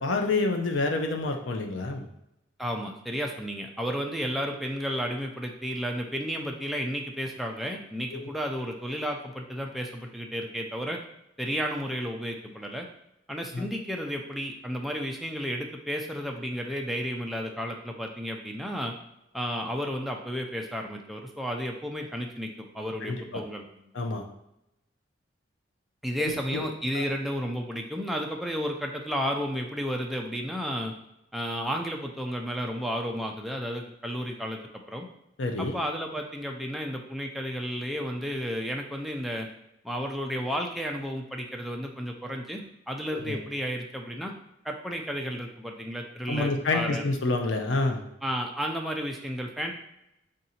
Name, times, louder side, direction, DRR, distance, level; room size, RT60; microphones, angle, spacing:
voice 1, 0.0-2.1 8.1-8.2 13.5-13.7 23.0-23.4 23.9-24.2 26.2-26.7 26.9-27.0 35.4-35.8 43.1-43.4 46.3-48.0, left 3 dB, 80° left, 4 dB, 0.6 m, -28 dB
voice 2, 2.6-11.0 11.4-12.9 13.3-18.9 19.3-23.6 24.0-24.1 26.0-30.9 31.3-34.6 34.9-35.1 35.6-39.5 39.8-44.3 44.6-47.0 48.2-49.7, equal, ahead, 1 dB, 0.4 m, -32 dB
3.7 x 2.6 x 4.2 m, 0.84 s
head